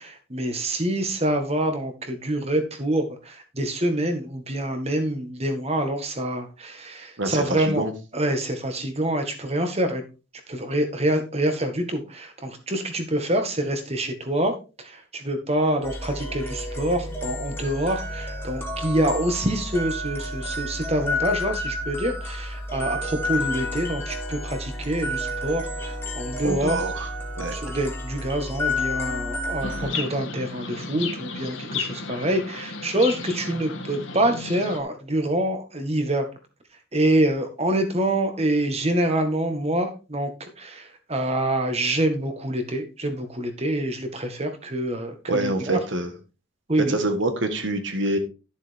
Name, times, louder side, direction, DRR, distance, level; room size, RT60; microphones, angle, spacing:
voice 1, 0.0-7.8 8.1-10.0 10.5-26.8 27.5-36.2 36.9-45.8 46.7-47.0, right 1 dB, 30° right, 6 dB, 1.6 m, -26 dB
voice 2, 7.2-7.9 26.4-27.1 27.4-27.5 45.3-46.1 46.9-48.2, right 2 dB, 65° right, 7 dB, 1.5 m, -26 dB
sound 1, 15.8-29.9, left 1 dB, 10° left, 2.0 m, -31 dB
Chirp tweet, 29.6-34.8, left 4 dB, 70° left, 2.0 m, -33 dB
11.5 x 7.3 x 3.5 m, 0.31 s
head